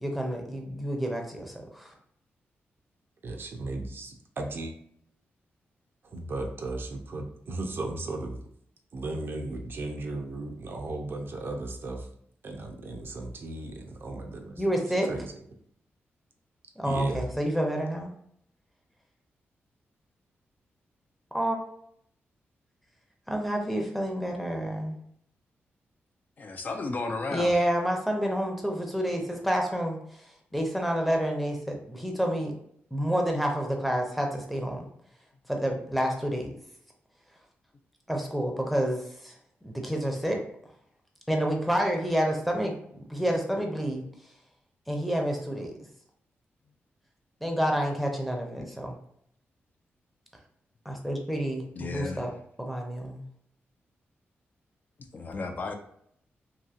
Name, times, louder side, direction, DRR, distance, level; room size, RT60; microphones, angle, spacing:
voice 1, 0.0-1.9 14.6-15.1 16.8-18.1 21.3-21.6 23.3-25.0 27.3-30.0 30.5-32.5 32.9-34.8 35.5-36.5 38.1-39.3 39.6-40.4 41.3-44.0 44.9-45.7 47.4-48.9 50.9-52.3 52.6-53.2, equal, ahead, 1 dB, 0.6 m, -29 dB
voice 2, 3.2-4.7 6.1-8.4 8.9-12.1 12.4-14.6 15.1-15.3 16.8-17.3, right 2 dB, 55° right, 3 dB, 0.5 m, -35 dB
voice 3, 26.4-27.6 51.8-52.2 55.1-55.7, left 3 dB, 40° left, 5 dB, 0.4 m, -33 dB
2.8 x 2.7 x 2.4 m, 0.68 s
cardioid pair, 90°, 4 cm